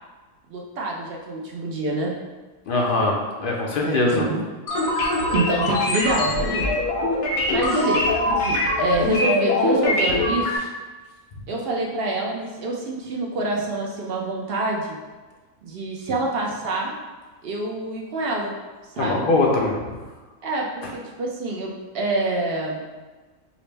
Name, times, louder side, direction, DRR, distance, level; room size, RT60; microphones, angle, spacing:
voice 1, 0.5-2.1 3.8-4.5 5.3-6.7 7.5-10.7 11.5-15.0 15.6-16.9 17.4-18.5 18.9-19.3 20.4-22.8, right 2 dB, 60° right, -1 dB, 0.6 m, -26 dB
voice 2, 2.7-4.2 19.0-19.8 20.8-20.9, left 2 dB, 65° left, -1 dB, 0.5 m, -22 dB
sound 1, 4.7-10.6, left 2 dB, 80° left, 1.2 m, -22 dB
4.9 x 2.0 x 3.3 m, 1.3 s
omnidirectional pair, 1.5 m